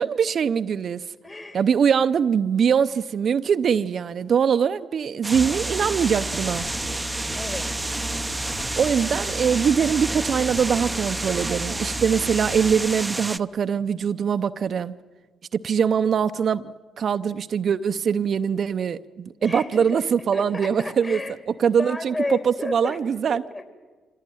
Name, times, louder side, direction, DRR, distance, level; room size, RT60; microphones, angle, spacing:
voice 1, 0.0-1.0 1.5-6.6 8.8-15.0 15.5-21.2 21.6-23.4, right 7 dB, 60° right, 10 dB, 0.7 m, -22 dB
voice 2, 1.2-1.6 7.3-7.8 19.4-21.4 21.7-23.0 23.3-23.7, left 2 dB, 30° left, 6 dB, 3.6 m, -33 dB
sound 1, 5.2-13.4, right 2 dB, 15° right, 0.7 m, -30 dB
sound 2, 5.3-12.7, equal, 85° left, 6.1 m, -36 dB
24.5 x 17.5 x 9.2 m, 1.4 s
supercardioid pair, 60°, 0 cm